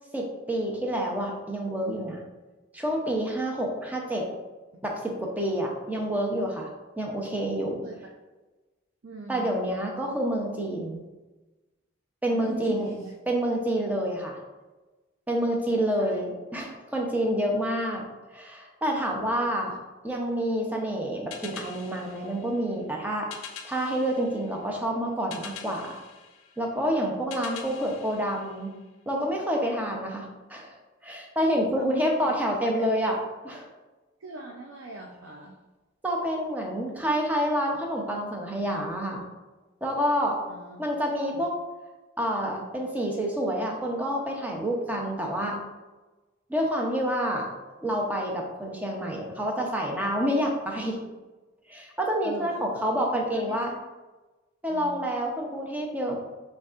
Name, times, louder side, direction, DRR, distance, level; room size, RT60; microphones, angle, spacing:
voice 1, 0.1-2.2 2.7-4.3 4.8-6.7 7.0-7.8 9.3-11.0 12.2-12.9 13.3-14.4 15.3-18.0 18.3-19.7 20.0-23.3 23.6-26.0 26.6-28.8 29.1-30.7 31.0-33.2 33.4-33.7 36.0-39.2 39.8-40.4 40.8-41.5 42.2-45.6 46.5-47.5 47.8-51.0 51.7-53.7 54.6-56.2, equal, 10° right, 0 dB, 0.6 m, -28 dB
voice 2, 9.0-9.6 12.3-13.1 15.9-16.2 19.7-19.8 31.7-32.3 32.7-32.9 34.2-35.6 40.5-40.8 41.3-41.5 52.2-53.8 54.7-55.0, right 2 dB, 75° right, 1 dB, 0.5 m, -41 dB
sound 1, 21.3-29.2, left 7 dB, 85° left, 0.5 m, -45 dB
5.2 x 3.5 x 2.4 m, 1.2 s
head